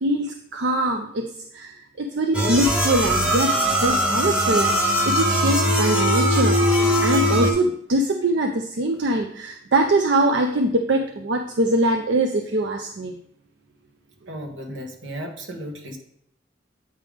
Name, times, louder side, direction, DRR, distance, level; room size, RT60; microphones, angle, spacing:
voice 1, 0.0-6.6 7.0-13.1, right 1 dB, 65° right, 4 dB, 0.5 m, -23 dB
sound 1, 2.3-7.5, equal, 5° right, 0.9 m, -20 dB
voice 2, 14.3-16.0, equal, 85° right, 3 dB, 1.3 m, -34 dB
8.7 x 5.0 x 3.5 m, 0.69 s
head